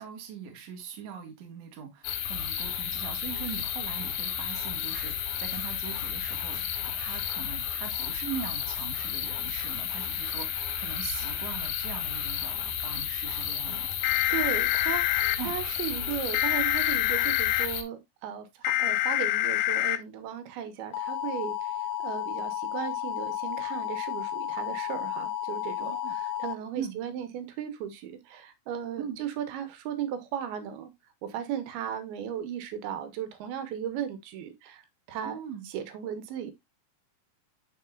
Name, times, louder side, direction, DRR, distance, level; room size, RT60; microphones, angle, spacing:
voice 1, 0.0-6.6 7.0-13.9 15.4-15.5 25.8-26.1 26.7-27.0 29.0-29.2 35.2-35.7, right 7 dB, 55° right, 2.1 m, -40 dB
sound 1, 2.0-17.8, left 9 dB, 75° left, 1.7 m, -32 dB
sound 2, 14.0-15.4 16.3-17.7 18.6-20.0 20.9-26.5, left 14 dB, 90° left, 2.5 m, -28 dB
voice 2, 14.0-21.7 22.0-30.9 31.2-34.8 35.1-35.4 35.7-36.5, right 9 dB, 85° right, 2.8 m, -36 dB
11.0 x 3.8 x 2.4 m
omnidirectional pair, 4.4 m